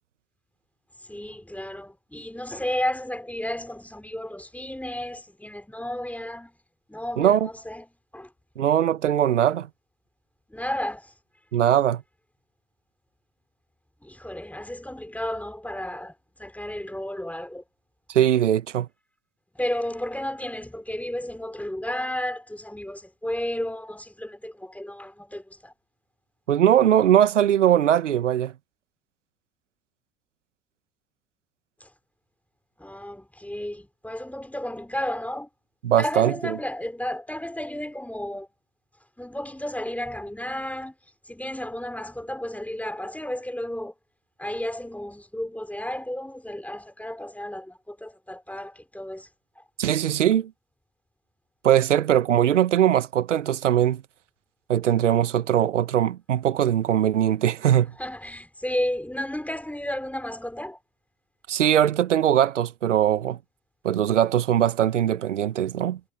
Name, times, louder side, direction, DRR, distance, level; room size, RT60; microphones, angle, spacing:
voice 1, 1.1-6.5 6.9-7.8 8.1-8.3 10.5-11.1 14.0-16.1 16.4-17.6 19.5-25.7 31.8-31.9 32.8-35.5 36.0-38.5 39.2-40.9 41.3-43.9 44.4-49.3 49.6-49.7 58.0-60.8, left 1 dB, 5° left, 5.1 m, -33 dB
voice 2, 7.2-7.5 8.6-9.7 11.5-12.0 18.1-18.9 26.5-28.5 35.8-36.5 49.8-50.5 51.6-54.0 54.7-57.9 61.5-63.4 63.8-66.0, right 10 dB, 85° right, 1.5 m, -21 dB
hypercardioid pair, 65°, 36 cm